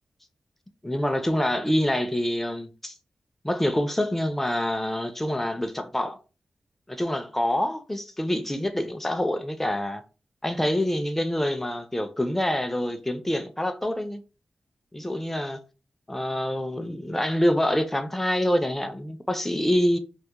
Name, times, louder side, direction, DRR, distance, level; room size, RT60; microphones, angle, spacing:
voice 1, 0.8-2.9 3.4-6.2 6.9-10.0 10.4-14.2 14.9-15.6 16.1-20.0, left 1 dB, 10° left, 0.3 m, -26 dB
2.2 x 2.0 x 2.8 m
wide cardioid pair, 90°, 3 cm